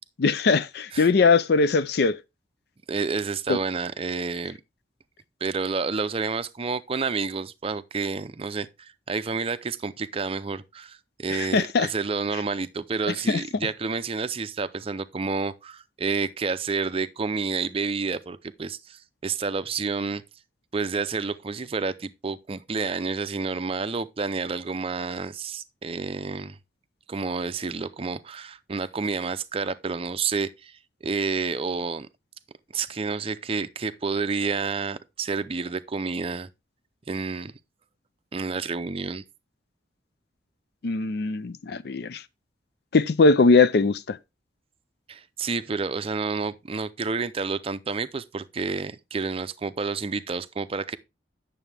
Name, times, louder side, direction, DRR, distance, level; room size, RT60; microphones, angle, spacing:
voice 1, 0.2-2.2 3.5-3.6 11.3-11.9 13.3-13.4 40.8-42.2 42.9-44.2, left 4 dB, 60° left, 0.5 m, -21 dB
voice 2, 2.9-4.6 5.4-20.2 20.7-26.6 27.1-32.1 32.7-36.5 37.1-37.5 38.3-39.2 45.1-51.0, right 4 dB, 30° right, 0.5 m, -29 dB
9.2 x 6.8 x 3.4 m
head